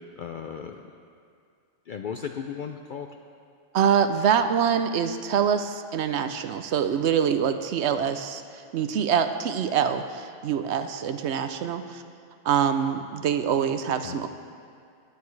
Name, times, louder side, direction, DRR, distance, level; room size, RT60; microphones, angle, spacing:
voice 1, 0.2-0.9 1.9-3.1 14.0-14.2, left 7 dB, 60° left, 4 dB, 0.5 m, -35 dB
voice 2, 3.7-12.0 12.4-14.3, right 8 dB, 70° right, 9 dB, 0.8 m, -25 dB
18.0 x 9.3 x 3.2 m, 2.2 s
omnidirectional pair, 1.3 m